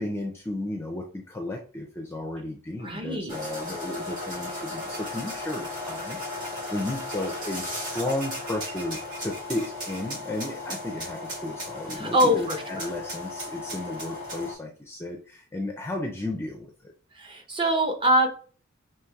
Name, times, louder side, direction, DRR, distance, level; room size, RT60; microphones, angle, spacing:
voice 1, 0.0-16.9, left 1 dB, 10° left, 1 dB, 0.4 m, -34 dB
voice 2, 2.8-3.4 11.9-12.9 17.1-18.3, equal, 25° right, 3 dB, 0.7 m, -24 dB
sound 1, 3.3-14.5, left 2 dB, 60° right, 2.3 m, -35 dB
6.0 x 3.1 x 2.3 m, 0.41 s
head